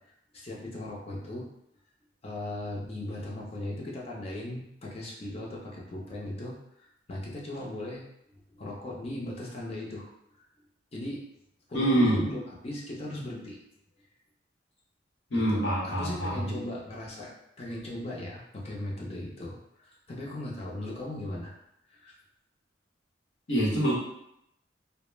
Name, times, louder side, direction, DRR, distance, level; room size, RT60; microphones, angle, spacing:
voice 1, 0.3-1.5 2.2-8.0 8.5-10.1 10.9-11.2 11.7-12.4 12.6-13.6 15.3-21.5 21.9-22.1, left 1 dB, 35° left, -3 dB, 0.6 m, -38 dB
voice 2, 11.7-12.2 15.3-16.6 23.5-24.0, right 1 dB, 90° left, -6 dB, 1.0 m, -25 dB
2.3 x 2.1 x 3.1 m, 0.78 s
head